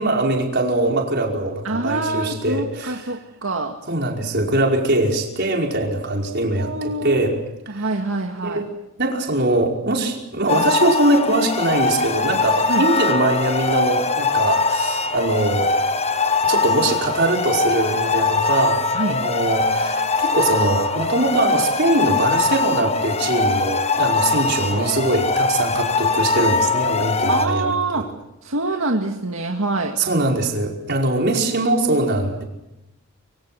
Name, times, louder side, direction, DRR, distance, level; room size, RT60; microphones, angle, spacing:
voice 1, 0.0-3.0 3.9-7.4 7.7-7.9 8.4-8.7 9.0-15.7 16.4-18.8 19.1-28.1 30.0-32.4, right 2 dB, 50° right, 0 dB, 5.2 m, -22 dB
voice 2, 1.6-3.8 6.6-7.2 7.7-8.6 12.7-12.9 18.9-19.2 27.3-28.1 28.4-30.0, right 2 dB, 65° right, 2 dB, 2.1 m, -25 dB
sound 1, 10.5-27.5, left 3 dB, 30° left, 1.2 m, -21 dB
25.5 x 24.5 x 7.8 m, 0.91 s
head